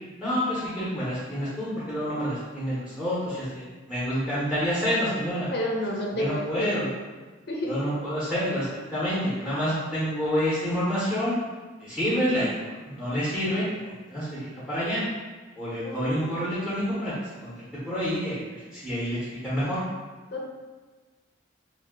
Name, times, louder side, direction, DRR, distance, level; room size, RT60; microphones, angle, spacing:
voice 1, 0.2-5.5 6.2-6.9 7.6-11.3 11.8-15.1 15.5-17.1 17.4-17.5 17.8-18.4 18.7-19.8, equal, ahead, -10 dB, 0.8 m, -28 dB
voice 2, 5.5-6.7 7.5-7.8 15.8-16.1 20.3-20.5, left 1 dB, 50° left, -2 dB, 0.5 m, -30 dB
2.5 x 2.2 x 3.6 m, 1.3 s
head